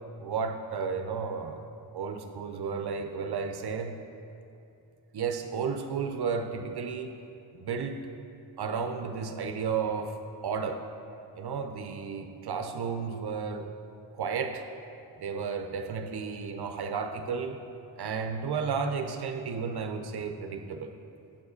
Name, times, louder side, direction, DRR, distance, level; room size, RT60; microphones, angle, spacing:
voice 1, 0.2-1.6 1.9-3.9 5.1-7.1 7.5-8.0 8.6-10.1 10.4-10.8 11.4-13.7 14.1-14.6 15.2-17.6 18.0-20.9, right 5 dB, 50° right, 6 dB, 0.6 m, -33 dB
7.5 x 4.8 x 6.4 m, 2.7 s
wide cardioid pair, 150°, 49 cm